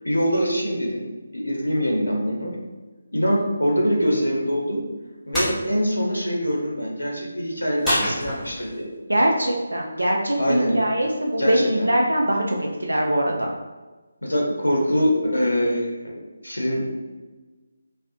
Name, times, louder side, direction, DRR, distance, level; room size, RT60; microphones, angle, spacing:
voice 1, 0.0-2.6 3.1-4.8 5.2-8.9 10.4-10.8 11.4-11.9 14.2-16.2 16.4-16.9, equal, 80° left, -1 dB, 0.6 m, -24 dB
sound 1, 5.3-5.6 7.8-8.8, equal, ahead, 0.6 m, -25 dB
voice 2, 9.1-13.5, right 1 dB, 75° right, 0 dB, 0.3 m, -22 dB
2.4 x 2.0 x 2.5 m, 1.2 s
figure-of-eight pair, 150°, 0 cm